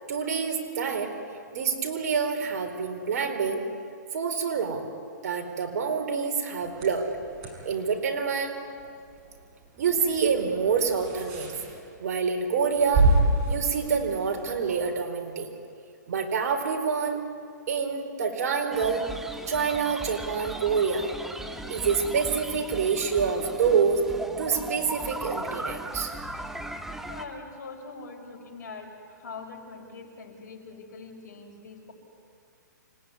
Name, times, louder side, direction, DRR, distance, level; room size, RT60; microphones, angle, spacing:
voice 1, 0.1-1.1 1.5-3.6 4.1-4.8 5.2-7.1 7.6-8.6 9.8-11.6 12.0-13.1 13.5-15.5 16.1-17.2 17.7-19.1 19.5-21.1 21.7-24.0 24.4-26.1, right 6 dB, 55° right, 4 dB, 4.3 m, -27 dB
sound 1, 6.6-14.9, right 2 dB, 30° right, 6.7 m, -30 dB
sound 2, 18.7-27.2, right 1 dB, 5° right, 1.5 m, -37 dB
voice 2, 27.0-31.9, left 4 dB, 65° left, 3 dB, 6.4 m, -43 dB
28.5 x 18.5 x 9.8 m, 2.3 s
hypercardioid pair, 145°, 10 cm